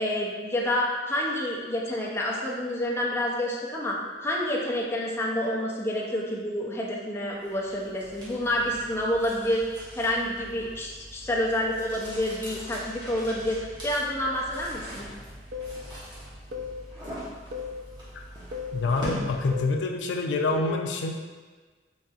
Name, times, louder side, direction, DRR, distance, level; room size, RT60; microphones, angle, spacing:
voice 1, 0.0-15.1, left 1 dB, 15° left, -3 dB, 0.5 m, -28 dB
sound 1, 7.4-19.8, equal, 25° right, 1.1 m, -41 dB
sound 2, 15.5-15.8 16.5-16.8 17.5-17.8 18.5-18.8 19.5-19.8 20.5-20.8, left 5 dB, 60° right, 0.4 m, -34 dB
voice 2, 18.7-21.2, left 3 dB, 80° left, 2 dB, 0.4 m, -26 dB
4.1 x 3.5 x 2.4 m, 1.4 s
head